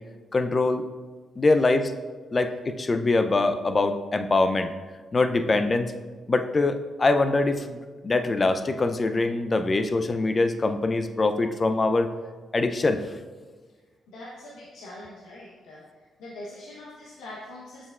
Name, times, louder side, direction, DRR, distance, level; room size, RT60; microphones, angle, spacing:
voice 1, 0.3-0.8 1.4-1.9 2.3-4.7 5.1-5.9 6.3-12.1 12.5-13.0, left 3 dB, 35° left, 8 dB, 0.5 m, -23 dB
voice 2, 14.1-15.8 16.2-17.9, left 1 dB, 85° left, -5 dB, 0.9 m, -42 dB
6.9 x 6.3 x 2.4 m, 1.4 s
supercardioid pair, 55°, 0 cm